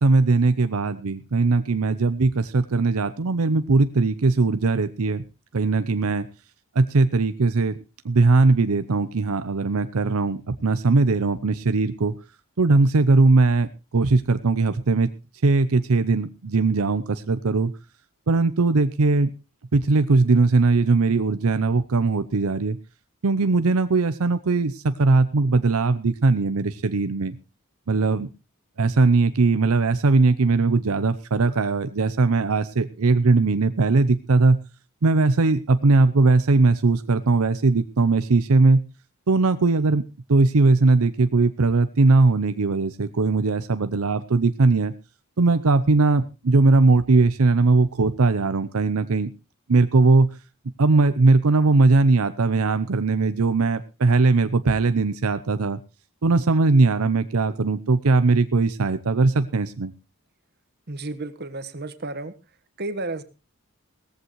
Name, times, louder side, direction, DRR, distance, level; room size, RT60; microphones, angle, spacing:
voice 1, 0.0-5.2 5.5-6.3 6.8-7.8 8.0-12.1 12.6-15.1 15.4-17.7 18.3-19.3 19.7-22.8 23.2-27.4 27.9-28.3 28.8-34.6 35.0-38.8 39.3-40.0 40.3-44.9 45.4-49.3 49.7-50.3 50.8-55.8 56.2-59.9, right 3 dB, 75° right, 12 dB, 0.7 m, -19 dB
voice 2, 60.9-62.3 62.8-63.2, right 2 dB, 45° right, 12 dB, 1.3 m, -32 dB
17.5 x 14.5 x 3.1 m, 0.29 s
head